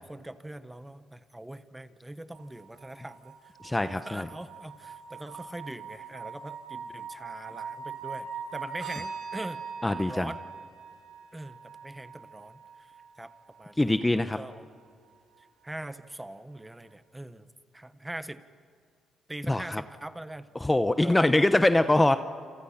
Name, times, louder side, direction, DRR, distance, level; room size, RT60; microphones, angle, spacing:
voice 1, 0.0-8.3 8.5-10.4 11.3-11.6 11.8-12.6 13.2-13.3 13.6-14.0 14.4-14.7 15.4-17.5 17.7-18.4 19.3-20.5 21.0-21.5, right 1 dB, 10° right, 12 dB, 1.3 m, -42 dB
sound 1, 2.3-14.3 15.7-15.8, right 6 dB, 70° right, 6.0 m, -42 dB
voice 2, 3.6-4.3 9.8-10.3 13.8-14.4 19.5-19.8 20.6-22.2, left 1 dB, 15° left, 10 dB, 0.9 m, -23 dB
28.5 x 27.5 x 5.8 m, 2.2 s
cardioid pair, 90°, 0 cm